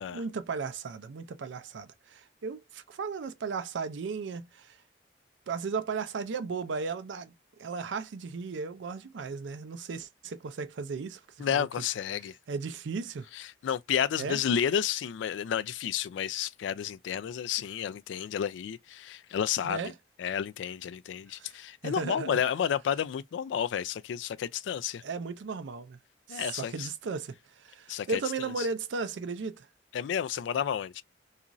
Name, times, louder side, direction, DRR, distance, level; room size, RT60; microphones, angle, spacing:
voice 1, 0.1-4.8 5.5-7.3 7.6-11.7 12.5-13.3 14.2-14.4 19.6-19.9 21.4-21.6 21.8-22.4 25.0-26.0 26.3-29.7, right 4 dB, 80° right, 0.4 m, -35 dB
voice 2, 11.4-12.4 13.3-19.8 20.2-25.0 26.3-26.9 27.9-28.2 28.6-28.7 29.9-31.0, left 8 dB, 85° left, 0.3 m, -31 dB
2.9 x 2.4 x 2.5 m
head